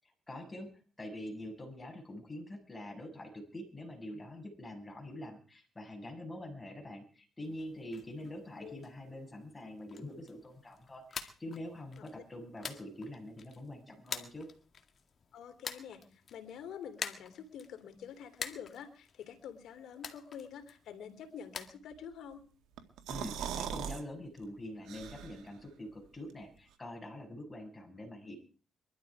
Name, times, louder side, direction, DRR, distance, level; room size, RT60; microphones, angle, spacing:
voice 1, 0.0-0.7 1.0-14.5 23.1-28.3, left 1 dB, 15° left, 1 dB, 6.7 m, -45 dB
sound 1, 7.4-21.7, left 6 dB, 45° left, 2.0 m, -48 dB
voice 2, 15.3-22.4, left 8 dB, 75° left, 7 dB, 3.2 m, -47 dB
sound 2, 22.8-24.0 24.4-24.5 24.9-25.5, right 9 dB, 85° right, 1.9 m, -39 dB
23.0 x 12.5 x 4.9 m, 0.39 s
cardioid pair, 90°, 0 cm